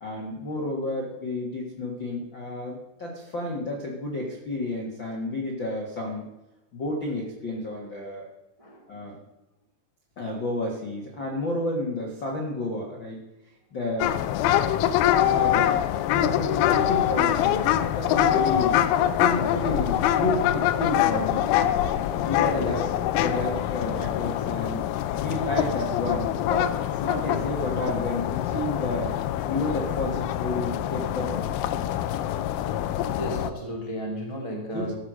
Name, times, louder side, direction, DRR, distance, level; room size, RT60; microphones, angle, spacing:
voice 1, 0.0-6.2 6.7-8.3 8.9-9.2 10.2-15.7 16.1-21.5 22.1-22.8 23.2-24.8 25.2-31.5 34.7-34.9, left 1 dB, 55° left, -1 dB, 1.3 m, -31 dB
sound 1, 14.0-33.5, left 11 dB, 80° left, 2.3 m, -24 dB
voice 2, 22.5-22.8 32.8-34.9, equal, 20° right, -1 dB, 0.9 m, -34 dB
14.5 x 6.6 x 6.2 m, 1.0 s
omnidirectional pair, 4.8 m